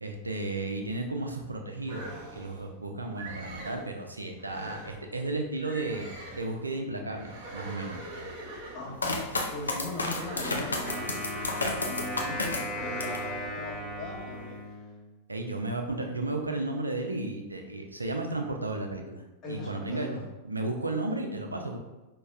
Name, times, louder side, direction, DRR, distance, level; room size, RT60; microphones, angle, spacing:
voice 1, 0.0-6.1 6.3-8.0 15.3-21.8, right 2 dB, 80° right, 3 dB, 0.4 m, -34 dB
sound 1, 1.9-2.7 3.1-3.9 4.4-5.0 5.6-6.6 7.1-9.1 9.8-12.0 12.6-13.4, right 1 dB, 45° right, 0.7 m, -42 dB
voice 2, 8.7-11.2 11.8-14.9 19.4-20.2, left 1 dB, 30° left, -5 dB, 1.2 m, -39 dB
sound 2, 9.0-13.3 13.7-14.4, left 2 dB, 75° left, 0.5 m, -32 dB
Wind instrument woodwind instrument, 10.9-15.2, left 1 dB, 5° left, 0.8 m, -37 dB
5.2 x 2.3 x 2.3 m, 1.1 s
figure-of-eight pair, 90°, 0 cm